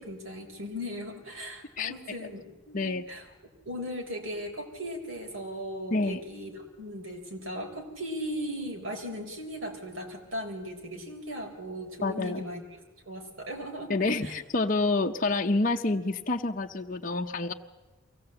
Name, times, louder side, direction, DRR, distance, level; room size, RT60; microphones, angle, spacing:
voice 1, 0.0-3.3 3.6-12.6 13.1-14.0 14.2-14.3, equal, 80° right, 2 dB, 4.0 m, -38 dB
voice 2, 5.9-6.2 12.0-12.4 13.9-17.5, left 3 dB, 40° left, 3 dB, 0.7 m, -28 dB
23.5 x 17.5 x 7.9 m, 1.2 s
head